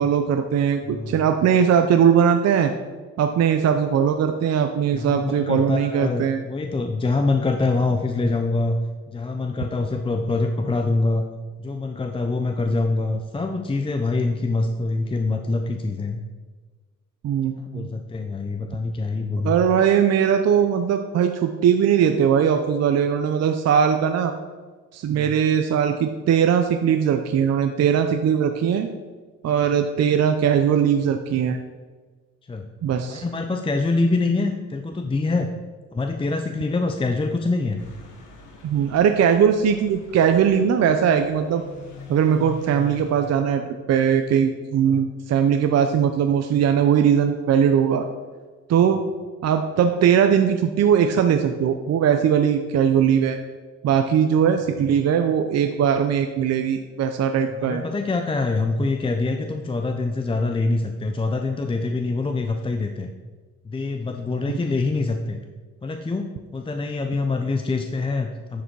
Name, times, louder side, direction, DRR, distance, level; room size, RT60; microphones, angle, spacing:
voice 1, 0.0-2.7 3.2-6.4 17.2-17.9 19.4-24.3 24.9-28.9 29.4-31.6 32.8-33.2 38.6-41.6 42.1-48.1 48.7-49.0 49.4-53.4 53.8-57.8, right 8 dB, 55° right, 6 dB, 0.6 m, -20 dB
voice 2, 0.8-1.3 4.9-8.8 9.1-11.2 11.6-16.2 17.7-19.5 25.1-25.3 32.5-32.7 33.1-35.5 35.9-37.8 44.9-45.0 57.6-63.1 63.6-65.4 65.8-68.6, left 3 dB, 20° left, 5 dB, 0.6 m, -25 dB
sound 1, 37.8-43.3, left 2 dB, 85° left, 1.5 m, -42 dB
10.0 x 4.9 x 4.7 m, 1.4 s
cardioid pair, 90°, 30 cm